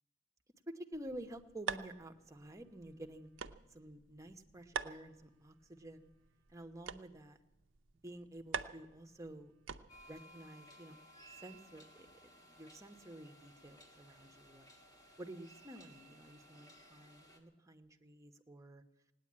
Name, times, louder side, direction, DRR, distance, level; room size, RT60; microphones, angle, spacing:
voice 1, 0.7-3.3 3.7-6.1 6.5-7.4 8.0-9.5 10.1-11.0 11.4-14.7 15.2-18.8, right 1 dB, 15° right, 5 dB, 1.0 m, -51 dB
sound 1, 0.9-10.2, right 6 dB, 75° right, 0.6 m, -47 dB
sound 2, 9.9-17.4, right 1 dB, 20° left, 1.8 m, -60 dB
18.0 x 9.5 x 8.6 m, 0.95 s
head